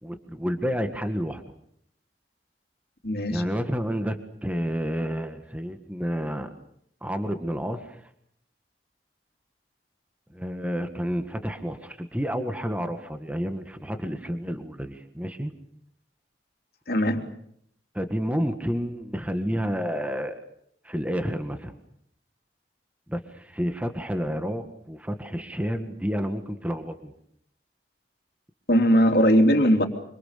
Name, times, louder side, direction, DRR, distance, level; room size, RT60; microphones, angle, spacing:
voice 1, 0.0-1.4 3.3-6.5 7.0-8.0 10.3-15.5 17.9-20.4 20.8-21.7 23.1-27.1, equal, 10° right, 7 dB, 1.8 m, -30 dB
voice 2, 3.0-3.4 16.9-17.2 28.7-29.8, equal, 60° left, 4 dB, 3.4 m, -19 dB
26.5 x 26.0 x 6.8 m, 0.71 s
head